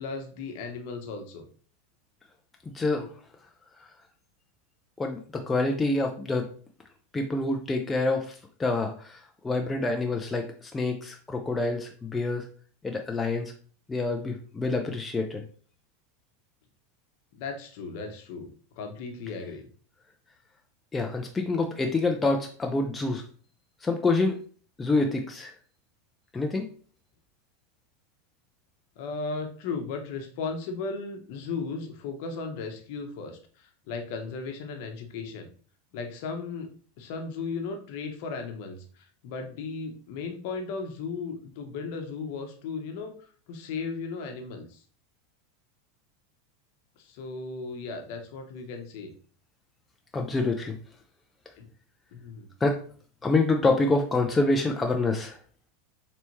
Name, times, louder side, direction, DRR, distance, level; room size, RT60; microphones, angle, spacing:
voice 1, 0.0-1.4 14.2-14.3 17.3-19.7 29.0-35.5 35.9-36.7 37.0-44.8 47.0-49.1 51.6-51.7 52.1-52.5, left 4 dB, 55° left, 5 dB, 0.9 m, -36 dB
voice 2, 2.7-3.1 5.0-6.5 7.1-12.5 12.8-13.5 13.9-15.4 20.9-23.2 23.8-24.4 24.8-25.5 26.3-26.7 50.1-50.7 52.6-52.8 53.2-55.4, left 3 dB, 10° left, 3 dB, 0.4 m, -27 dB
4.1 x 3.4 x 3.0 m, 0.42 s
supercardioid pair, 150°, 0 cm